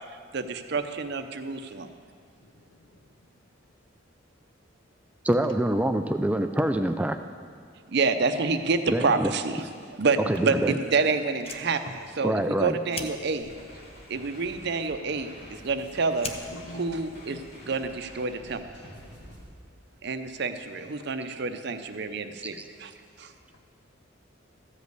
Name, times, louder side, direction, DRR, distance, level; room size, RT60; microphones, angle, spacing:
voice 1, 0.3-1.9 7.9-9.7 10.0-11.8 12.2-13.5 14.1-16.3 16.8-17.4 17.7-18.6 20.0-22.9 23.2-23.3, right 4 dB, 60° right, 8 dB, 0.6 m, -28 dB
voice 2, 2.4-3.3 11.9-12.0 16.0-16.1 16.5-17.0 17.3-17.9, equal, 75° left, 7 dB, 0.8 m, -45 dB
voice 3, 5.2-7.2 8.9-9.3 10.3-10.8 12.2-12.8 22.5-22.6, right 1 dB, 5° right, 8 dB, 0.3 m, -25 dB
Fire, 11.3-18.1, left 4 dB, 30° left, 0.7 m, -45 dB
sound 1, 13.4-19.4, equal, 60° left, 2.3 m, -48 dB
14.0 x 5.2 x 8.0 m, 2.1 s
head